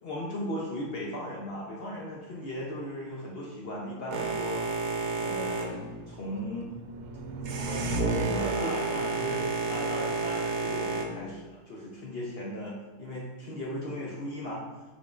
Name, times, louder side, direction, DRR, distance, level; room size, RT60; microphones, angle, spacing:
voice 1, 0.0-4.6 5.2-6.7 7.9-14.6, equal, 60° left, -4 dB, 0.6 m, -37 dB
Boat Water vehicle, 4.1-11.1, right 3 dB, 85° right, 1.1 m, -31 dB
5.0 x 3.7 x 2.4 m, 1.2 s
omnidirectional pair, 1.6 m